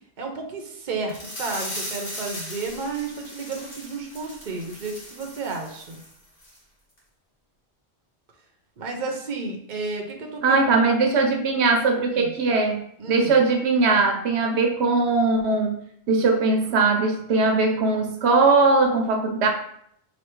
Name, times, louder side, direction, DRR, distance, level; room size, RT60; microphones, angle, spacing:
voice 1, 0.2-6.0 8.8-10.6 12.1-12.3 13.0-13.3, right 4 dB, 50° right, 2 dB, 0.8 m, -32 dB
sound 1, 1.1-6.1 6.4-6.6 7.0-7.1, equal, 55° left, 1.8 m, -38 dB
voice 2, 10.4-19.5, right 3 dB, 80° right, 3 dB, 0.9 m, -20 dB
3.2 x 2.7 x 4.5 m, 0.68 s
omnidirectional pair, 1.1 m